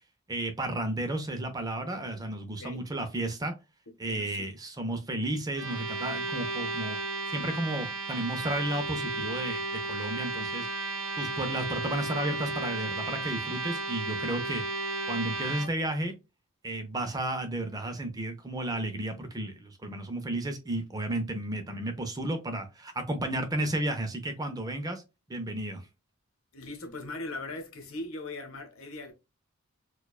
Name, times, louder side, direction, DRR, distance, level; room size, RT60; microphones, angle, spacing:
voice 1, 0.3-3.5 4.0-7.0 7.3-10.7 11.2-16.1 16.6-25.0 25.3-25.9, right 1 dB, 15° right, 0.5 m, -33 dB
voice 2, 4.1-4.5 26.5-29.1, left 2 dB, 70° left, 1.0 m, -39 dB
sound 1, 5.5-15.7, right 3 dB, 80° right, 0.9 m, -34 dB
4.4 x 2.3 x 2.3 m
head